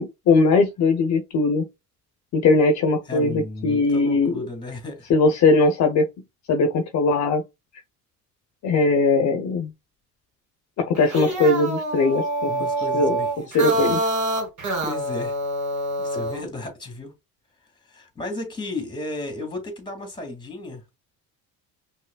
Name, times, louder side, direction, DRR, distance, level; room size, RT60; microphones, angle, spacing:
voice 1, 0.0-1.7 2.3-4.3 5.1-6.1 6.5-7.4 8.6-9.7 10.8-12.5 12.9-13.2 13.5-14.0, left 3 dB, 50° left, 0.7 m, -20 dB
voice 2, 3.1-5.1 12.4-14.0 14.8-15.4 16.0-17.1 17.9-20.8, left 2 dB, 15° left, 1.9 m, -34 dB
sound 1, 10.9-16.4, right 1 dB, 55° right, 2.2 m, -26 dB
5.5 x 3.1 x 2.2 m
cardioid pair, 120°, 34 cm